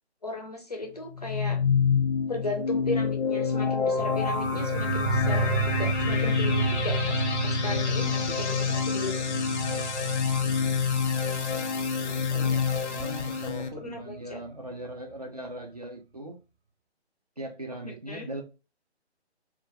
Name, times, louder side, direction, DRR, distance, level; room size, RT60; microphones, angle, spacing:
voice 1, 0.2-1.6 2.3-9.2 13.8-14.4 17.8-18.3, left 2 dB, 40° left, 0.4 m, -36 dB
sound 1, 1.1-13.7, left 6 dB, 85° left, 0.6 m, -27 dB
sound 2, 4.0-13.8, right 6 dB, 70° right, 0.7 m, -32 dB
voice 2, 11.4-16.4 17.4-18.4, right 1 dB, 35° right, 0.4 m, -40 dB
2.3 x 2.1 x 2.8 m
figure-of-eight pair, 150°, 34 cm